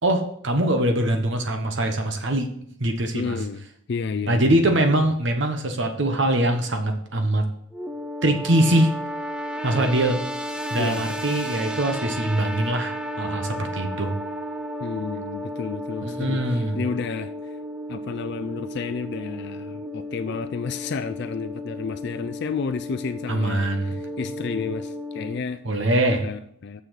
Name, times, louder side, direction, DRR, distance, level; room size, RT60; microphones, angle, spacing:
voice 1, 0.0-2.5 2.8-3.4 4.3-7.5 8.2-8.9 9.6-10.2 10.7-14.1 16.0-16.8 23.3-23.9 25.6-26.2, right 1 dB, 55° right, 5 dB, 1.0 m, -22 dB
voice 2, 3.1-3.6 3.9-4.8 10.8-11.0 14.8-17.6 17.9-25.6 26.2-26.8, left 5 dB, 55° left, 11 dB, 0.4 m, -31 dB
sound 1, 7.7-25.4, equal, 5° right, 0.5 m, -33 dB
6.9 x 6.4 x 6.4 m, 0.68 s
head